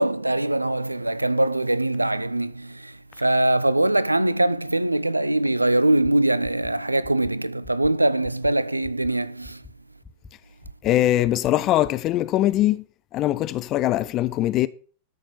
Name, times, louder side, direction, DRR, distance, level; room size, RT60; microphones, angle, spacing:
voice 1, 0.0-9.6, right 1 dB, 85° right, 0.4 m, -22 dB
sound 1, 6.6-6.7 7.0-7.3 7.6-7.9 8.2-8.5 8.8-9.1 9.4-9.7 10.0-10.3 10.6-10.9 11.2-11.5 11.8-12.1, left 4 dB, 15° left, 1.4 m, -44 dB
voice 2, 10.8-12.8 13.1-14.7, left 14 dB, 35° left, 0.7 m, -21 dB
13.0 x 6.3 x 6.4 m
figure-of-eight pair, 90°, 0 cm